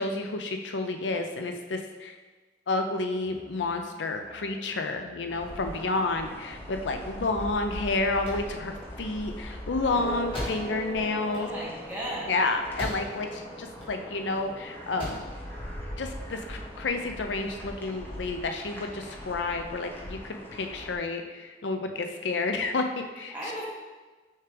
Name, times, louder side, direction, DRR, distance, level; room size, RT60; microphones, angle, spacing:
voice 1, 0.0-2.2 2.7-11.5 12.3-15.3 16.0-23.3, left 3 dB, 80° left, 5 dB, 0.5 m, -30 dB
Musical instrument, 3.2-9.0, right 1 dB, 75° right, 1.1 m, -51 dB
sound 1, 5.3-20.9, equal, 10° left, 1.1 m, -40 dB
sound 2, 8.1-13.4 13.7-14.4 14.8-15.4, equal, 35° left, 2.1 m, -40 dB
voice 2, 11.3-12.3 23.3-23.7, right 1 dB, 10° right, -6 dB, 1.7 m, -35 dB
6.4 x 5.8 x 3.4 m, 1.3 s
head